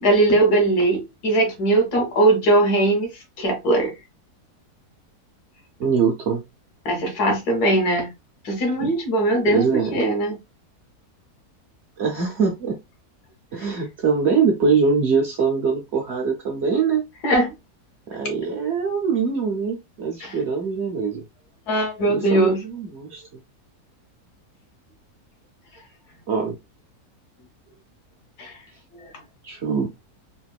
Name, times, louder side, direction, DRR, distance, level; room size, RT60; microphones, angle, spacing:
voice 1, 0.0-3.1 3.4-3.9 6.8-8.1 8.4-9.6 9.9-10.4 17.2-17.5 20.2-20.3 21.7-22.6 28.4-28.5, right 2 dB, 75° left, 1.5 m, -20 dB
voice 2, 5.8-6.4 9.4-10.0 12.0-12.8 13.5-17.0 18.1-21.2 22.1-23.2 26.3-26.6 29.4-29.9, right 5 dB, 55° right, 0.8 m, -23 dB
3.6 x 2.5 x 2.3 m
omnidirectional pair, 1.7 m